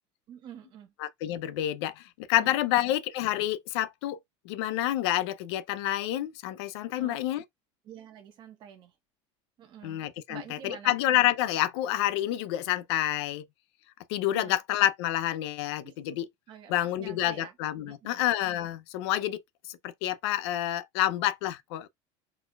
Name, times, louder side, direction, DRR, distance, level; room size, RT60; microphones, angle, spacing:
voice 1, 0.3-0.9 2.4-2.8 6.9-7.2 7.8-8.9 9.6-11.0 14.3-14.5 15.8-16.2 16.5-17.5 17.9-18.2, right 9 dB, 35° right, 1.1 m, -48 dB
voice 2, 1.0-4.2 4.4-7.4 9.8-13.4 14.1-16.3 16.7-19.4 19.7-21.9, left 13 dB, 70° left, 0.5 m, -28 dB
4.5 x 4.1 x 2.3 m
cardioid pair, 175°, 14 cm